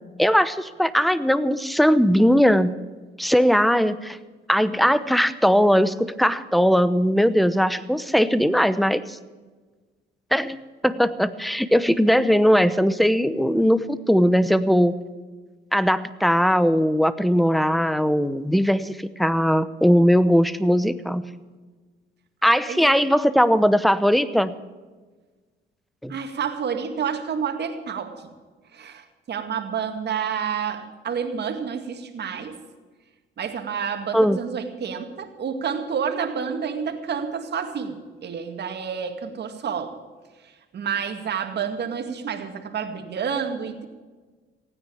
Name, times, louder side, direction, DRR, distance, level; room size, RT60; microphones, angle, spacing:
voice 1, 0.2-2.7 3.2-4.2 4.5-9.2 10.3-10.6 10.8-14.9 15.7-21.2 22.4-24.5 26.0-26.1 34.1-34.4, equal, ahead, 15 dB, 0.9 m, -19 dB
voice 2, 26.1-28.3 28.7-32.6 33.4-40.0 40.7-43.8, right 7 dB, 60° right, 6 dB, 2.2 m, -29 dB
16.5 x 9.6 x 8.5 m, 1.3 s
cardioid pair, 90°, 20 cm